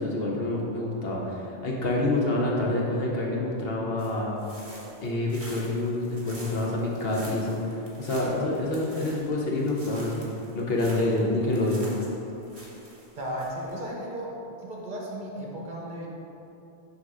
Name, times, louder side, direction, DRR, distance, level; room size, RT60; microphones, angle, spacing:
voice 1, 0.0-4.4 5.0-7.6 8.0-10.3 10.5-11.9, left 2 dB, 70° left, -3 dB, 1.3 m, -27 dB
sound 1, 4.0-13.8, right 1 dB, 35° right, 1.4 m, -47 dB
voice 2, 13.2-14.3 14.6-16.1, right 1 dB, 50° right, -3 dB, 1.2 m, -35 dB
7.3 x 3.3 x 6.2 m, 2.9 s
omnidirectional pair, 1.0 m